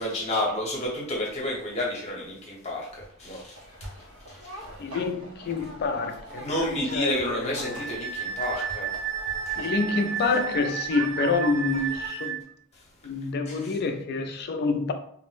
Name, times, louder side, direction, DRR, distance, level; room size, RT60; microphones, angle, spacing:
voice 1, 0.0-3.9 4.3-4.5 6.3-9.0 9.4-9.7 13.5-13.8, left 1 dB, 30° left, 0.8 m, -31 dB
sound 1, 2.9-12.1, right 1 dB, 65° right, 0.6 m, -43 dB
voice 2, 4.8-7.8 9.6-12.4 13.0-14.9, left 4 dB, 45° left, 0.3 m, -28 dB
Wind instrument woodwind instrument, 7.6-12.4, right 8 dB, 5° right, 0.6 m, -32 dB
2.5 x 2.0 x 3.1 m
head